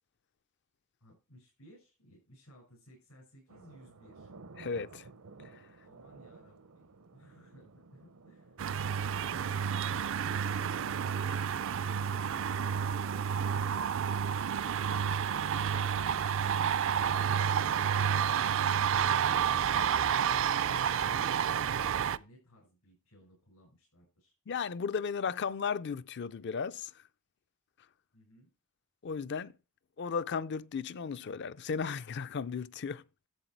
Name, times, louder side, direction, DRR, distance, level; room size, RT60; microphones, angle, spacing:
voice 1, 1.0-4.3 5.8-8.6 14.9-19.6 20.7-24.3 28.1-28.5, equal, 85° left, 6.4 m, -59 dB
sound 1, 3.5-10.3, right 3 dB, 80° right, 0.8 m, -55 dB
voice 2, 4.6-5.0 24.5-26.9 29.0-29.5 30.0-33.0, left 6 dB, 50° left, 0.4 m, -35 dB
sound 2, 8.6-22.2, right 8 dB, 60° right, 0.4 m, -30 dB
11.5 x 7.8 x 4.5 m
head